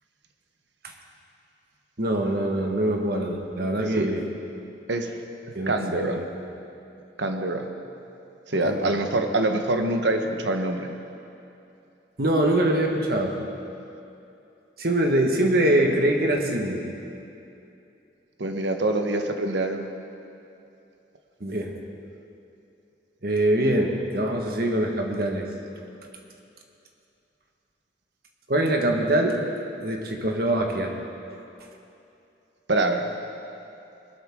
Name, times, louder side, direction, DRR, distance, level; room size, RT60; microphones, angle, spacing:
voice 1, 2.0-4.2 5.5-6.2 8.6-9.0 12.2-13.3 14.8-16.8 21.4-21.7 23.2-25.5 28.5-29.3 29.8-30.9, right 1 dB, 55° right, 2 dB, 1.5 m, -23 dB
voice 2, 5.7-6.2 7.2-7.7 8.5-10.9 18.4-19.9 32.7-33.1, right 2 dB, 80° right, 5 dB, 1.1 m, -25 dB
21.0 x 12.0 x 3.7 m, 2.7 s
head